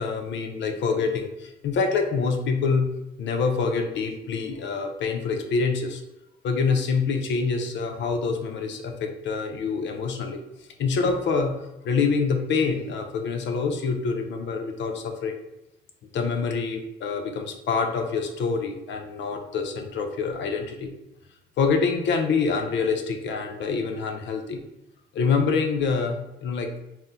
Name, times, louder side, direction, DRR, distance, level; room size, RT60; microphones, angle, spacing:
voice 1, 0.0-2.9 3.2-6.0 6.4-11.5 11.8-15.4 16.1-20.9 21.6-24.6 25.1-26.7, left 5 dB, 65° left, 4 dB, 0.5 m, -26 dB
2.7 x 2.1 x 3.5 m, 0.91 s
cardioid pair, 90°, 20 cm